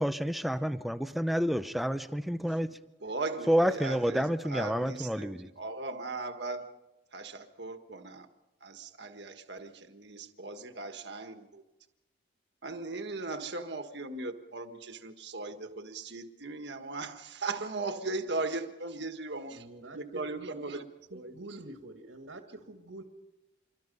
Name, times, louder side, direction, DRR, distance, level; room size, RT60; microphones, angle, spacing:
voice 1, 0.0-2.7 3.5-5.5, equal, ahead, 10 dB, 0.7 m, -29 dB
voice 2, 3.0-6.7 7.1-8.3 8.6-11.6 12.6-19.7 19.9-21.6, right 3 dB, 60° right, 7 dB, 1.6 m, -38 dB
voice 3, 19.5-20.8 21.1-23.0, right 2 dB, 90° right, 5 dB, 2.0 m, -47 dB
27.0 x 23.0 x 5.4 m, 1.0 s
head